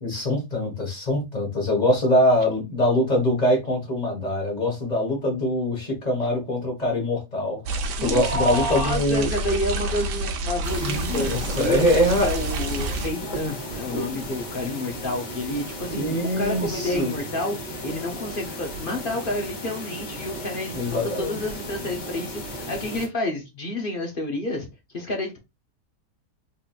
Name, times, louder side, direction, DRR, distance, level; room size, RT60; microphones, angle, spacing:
voice 1, 0.0-9.3 10.8-12.3 16.0-17.1 20.7-21.4, left 1 dB, 25° left, 0 dB, 1.6 m, -23 dB
sound 1, 7.7-13.1, right 2 dB, 75° right, 1.4 m, -29 dB
voice 2, 8.0-17.6 17.8-24.7 24.9-25.4, left 1 dB, 45° left, 3 dB, 0.7 m, -29 dB
sound 2, 10.6-23.1, equal, 70° left, 1.8 m, -35 dB
3.9 x 3.8 x 2.4 m, 0.24 s
omnidirectional pair, 1.9 m